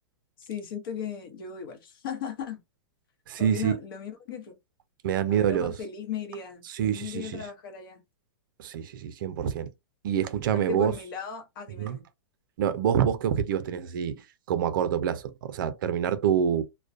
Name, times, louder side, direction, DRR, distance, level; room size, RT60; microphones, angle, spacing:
voice 1, 0.4-2.6 3.4-4.5 5.3-8.0 10.5-12.1, left 7 dB, 55° left, 0.9 m, -37 dB
voice 2, 3.3-3.8 5.0-5.7 6.7-7.4 8.6-9.7 10.0-10.9 11.8-12.0 12.6-14.2 14.5-16.6, right 9 dB, 50° right, 0.4 m, -26 dB
2.3 x 2.1 x 2.5 m
hypercardioid pair, 160°, 14 cm